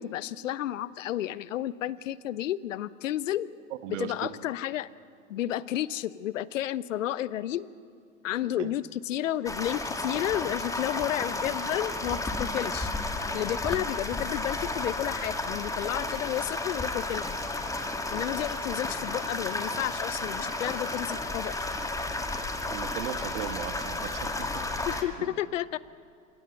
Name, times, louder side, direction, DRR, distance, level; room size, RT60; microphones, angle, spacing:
voice 1, 0.0-3.5 4.0-4.9 5.3-7.7 8.2-12.9 13.3-17.3 18.1-21.5 24.9-25.8, left 12 dB, 70° left, 19 dB, 0.8 m, -31 dB
voice 2, 3.8-4.3 8.6-8.7 22.7-24.8 25.2-25.4, right 11 dB, 65° right, 10 dB, 1.6 m, -38 dB
sound 1, 9.5-25.0, left 2 dB, 10° left, 1.9 m, -32 dB
29.0 x 17.0 x 8.0 m, 2.3 s
hypercardioid pair, 90°, 39 cm